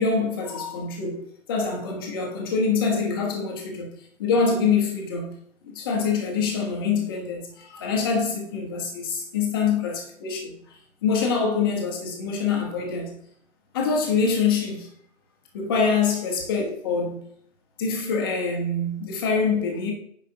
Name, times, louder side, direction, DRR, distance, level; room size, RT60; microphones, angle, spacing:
voice 1, 0.0-3.9 4.2-5.4 5.6-10.5 11.0-13.2 13.7-14.9 15.5-17.2 17.8-19.9, left 5 dB, 15° left, 1.0 m, -25 dB
9.7 x 5.0 x 2.8 m
figure-of-eight pair, 155°, 41 cm